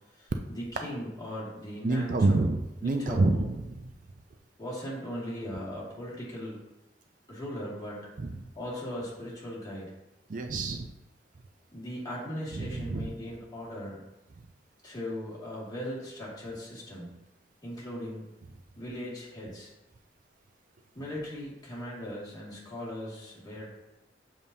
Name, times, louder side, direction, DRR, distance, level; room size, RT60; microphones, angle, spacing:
voice 1, 0.1-2.5 2.8-3.5 4.6-6.6 7.3-8.1 8.6-9.9 11.7-14.0 14.8-17.1 17.6-18.3 18.8-19.7 20.9-23.7, equal, 25° left, -7 dB, 2.1 m, -38 dB
voice 2, 1.8-3.9 8.2-8.4 10.3-10.9 12.5-13.1, right 2 dB, 50° right, 5 dB, 0.4 m, -28 dB
7.2 x 5.3 x 2.7 m, 0.96 s
head